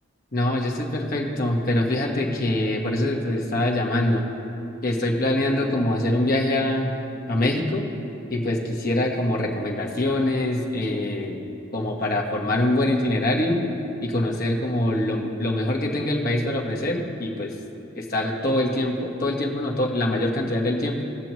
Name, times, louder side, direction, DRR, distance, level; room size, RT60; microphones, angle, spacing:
voice 1, 0.3-4.2 4.8-7.0 7.3-7.9 8.3-11.4 11.7-13.6 14.0-17.5 17.9-21.0, left 1 dB, 45° left, -2 dB, 1.3 m, -24 dB
20.0 x 6.9 x 3.1 m, 2.8 s
head